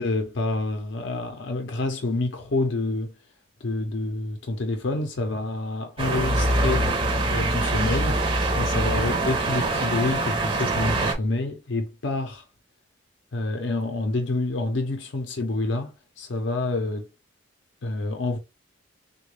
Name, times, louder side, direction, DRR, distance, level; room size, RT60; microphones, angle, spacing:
voice 1, 0.0-3.1 3.6-6.9 7.3-8.2 8.5-12.4 13.3-17.1 17.8-18.4, left 2 dB, 70° left, 0.5 m, -28 dB
sound 1, 6.0-11.1, right 2 dB, 25° right, 0.5 m, -24 dB
3.6 x 2.2 x 3.1 m
head